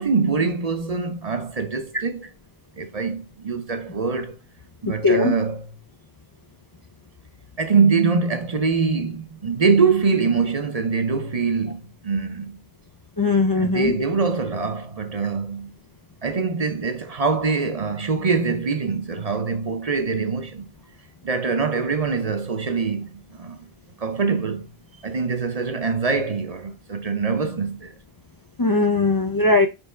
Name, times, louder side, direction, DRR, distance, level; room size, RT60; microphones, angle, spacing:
voice 1, 0.0-2.3 2.8-4.4 4.8-5.7 7.6-12.5 13.6-15.7 16.2-20.7 21.2-23.6 24.0-24.7 25.0-27.9, right 5 dB, 40° right, 0.7 m, -23 dB
voice 2, 5.0-5.3 13.2-13.9 28.6-29.7, left 3 dB, 35° left, 0.3 m, -19 dB
5.3 x 3.4 x 5.5 m
omnidirectional pair, 1.1 m